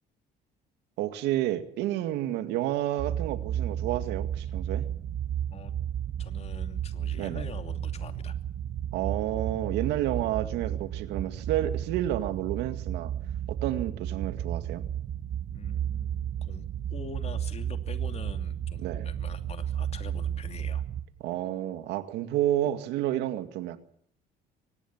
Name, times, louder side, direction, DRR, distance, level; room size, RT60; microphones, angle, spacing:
voice 1, 1.0-4.9 7.2-7.5 8.9-13.1 13.5-14.9 18.8-19.1 21.2-23.8, right 13 dB, 90° right, 9 dB, 2.1 m, -30 dB
sound 1, 3.0-21.0, right 10 dB, 55° right, 1.9 m, -33 dB
voice 2, 6.2-8.4 15.5-20.8, left 5 dB, 40° left, 7 dB, 2.7 m, -45 dB
24.0 x 19.5 x 7.3 m, 0.65 s
cardioid pair, 110°, 17 cm